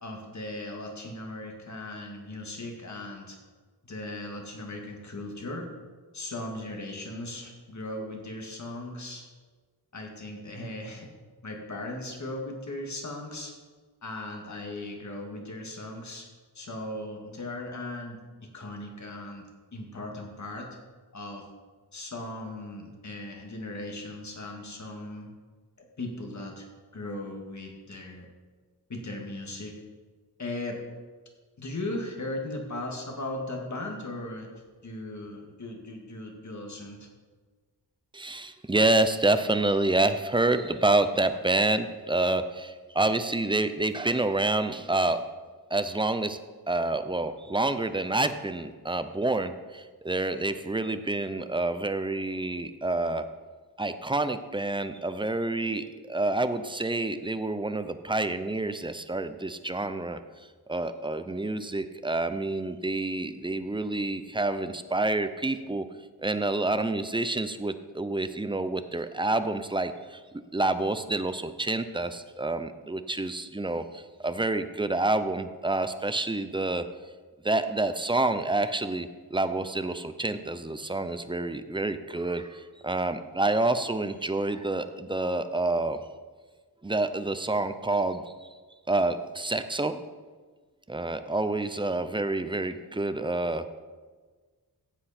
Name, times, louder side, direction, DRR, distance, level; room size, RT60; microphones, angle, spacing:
voice 1, 0.0-3.4 3.8-5.7 6.1-9.2 9.9-11.1 11.4-13.5 14.0-16.3 16.5-18.2 18.5-19.4 19.7-20.7 21.1-21.4 21.9-25.3 26.0-26.7 26.9-28.3 28.9-29.7 30.4-30.8 31.6-34.5 34.8-37.1, left 2 dB, 45° left, 1 dB, 2.2 m, -37 dB
voice 2, 38.1-45.2 45.7-46.4 46.7-53.3 53.8-60.2 60.7-65.8 66.2-70.2 70.5-76.8 77.4-86.0 86.8-88.2 88.9-90.0 90.9-93.6, right 2 dB, 10° right, 10 dB, 0.6 m, -28 dB
15.0 x 7.8 x 4.3 m, 1.4 s
wide cardioid pair, 115°, 39 cm